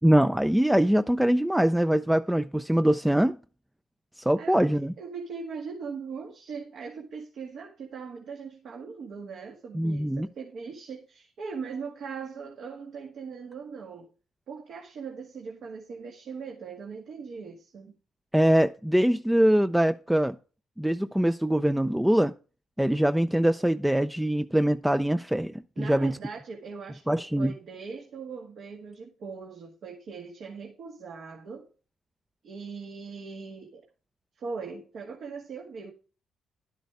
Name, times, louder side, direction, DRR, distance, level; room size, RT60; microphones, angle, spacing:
voice 1, 0.0-3.4 4.2-4.9 9.7-10.3 18.3-20.4 20.8-22.3 22.8-26.2 27.1-27.5, right 1 dB, 5° right, 0.4 m, -23 dB
voice 2, 4.4-4.7 5.0-14.1 14.5-17.9 25.8-31.7 32.4-33.9 34.4-35.9, right 5 dB, 65° right, 1.9 m, -40 dB
11.5 x 8.4 x 3.5 m
cardioid pair, 90°, 0 cm